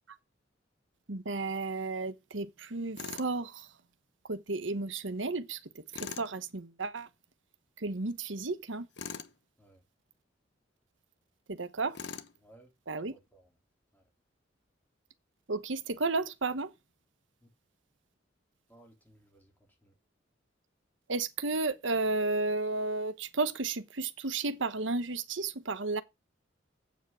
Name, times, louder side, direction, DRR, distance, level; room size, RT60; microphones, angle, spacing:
voice 1, 1.1-3.7 4.3-7.1 7.8-8.9 11.5-12.0 12.9-13.1 15.5-16.7 21.1-26.0, right 3 dB, 80° right, 1.1 m, -33 dB
Tools, 3.0-3.3 5.9-6.3 8.9-9.3 11.9-12.4, left 6 dB, 65° left, 1.0 m, -41 dB
voice 2, 12.4-12.7 13.0-13.6 13.9-14.0 17.4-17.5 18.7-19.5 19.8-20.0, right 1 dB, 10° left, 3.4 m, -60 dB
8.2 x 7.4 x 6.1 m
head